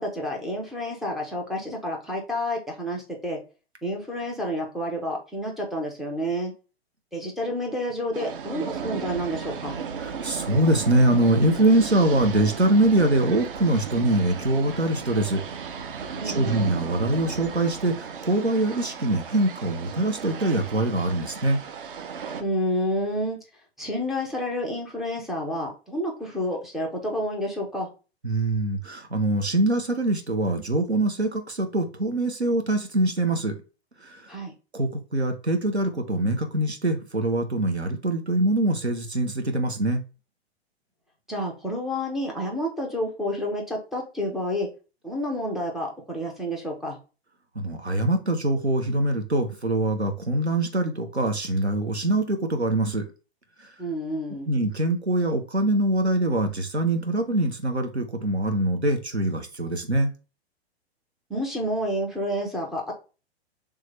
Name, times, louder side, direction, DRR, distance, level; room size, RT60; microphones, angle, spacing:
voice 1, 0.0-3.4 3.8-6.5 7.1-9.8 16.1-16.5 22.4-23.4 23.8-27.9 34.3-34.5 41.3-44.7 45.0-47.0 53.8-54.5 61.3-62.9, equal, ahead, 0.3 m, -29 dB
sound 1, 8.1-22.4, right 6 dB, 55° right, 0.7 m, -35 dB
voice 2, 10.0-15.4 15.9-21.6 28.2-33.5 34.0-34.2 34.7-40.0 47.6-53.0 54.5-60.1, right 1 dB, 90° right, 0.9 m, -23 dB
3.6 x 3.3 x 3.2 m
figure-of-eight pair, 105°, 32 cm